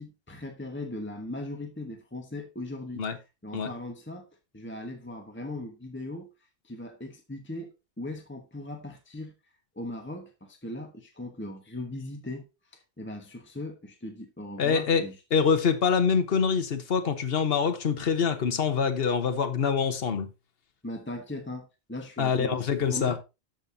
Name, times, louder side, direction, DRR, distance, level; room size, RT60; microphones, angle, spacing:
voice 1, 0.0-3.0 3.4-4.3 4.5-6.3 6.6-9.3 9.7-12.5 12.7-15.2 20.8-23.2, left 1 dB, 10° left, 1.2 m, -39 dB
voice 2, 14.6-15.0 15.3-20.3 22.2-23.2, left 6 dB, 60° left, 1.3 m, -25 dB
13.5 x 5.4 x 2.8 m
omnidirectional pair, 1.1 m